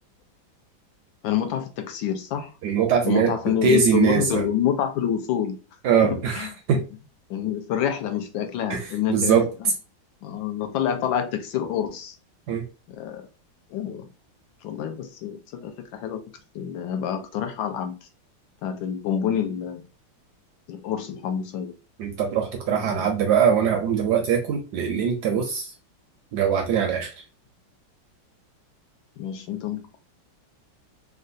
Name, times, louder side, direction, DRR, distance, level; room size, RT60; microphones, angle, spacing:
voice 1, 1.2-2.5 3.0-5.6 6.0-6.5 6.7-6.8 7.3-9.7 10.2-12.2 12.9-13.3 13.7-14.1 14.6-16.2 16.5-18.0 18.6-19.8 20.7-21.7 22.9-23.1 29.2-30.0, left 9 dB, 80° left, 1.3 m, -27 dB
voice 2, 2.6-3.4 3.6-4.4 5.8-6.8 8.7-8.8 9.1-9.5 12.5-12.6 22.0-25.7 26.3-27.1, right 7 dB, 70° right, 1.0 m, -22 dB
3.7 x 2.2 x 2.5 m
omnidirectional pair, 2.1 m